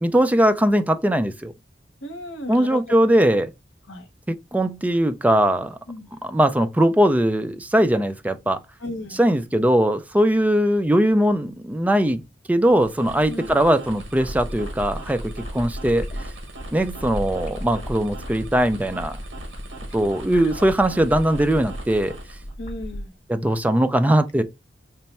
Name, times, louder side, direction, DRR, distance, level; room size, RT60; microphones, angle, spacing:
voice 1, 0.0-1.5 2.5-3.5 4.3-5.8 6.2-8.6 9.2-12.2 12.5-16.1 16.7-19.2 19.9-22.1 23.3-24.4, right 1 dB, 10° right, 0.3 m, -20 dB
voice 2, 2.0-2.8 3.9-4.1 5.9-6.1 8.8-9.2 13.3-13.5 20.3-20.7 22.6-23.1, left 1 dB, 80° left, 0.8 m, -35 dB
sound 1, 12.6-22.5, right 1 dB, 85° right, 0.9 m, -40 dB
sound 2, 14.1-23.1, equal, 40° left, 0.8 m, -35 dB
3.3 x 2.1 x 4.0 m
head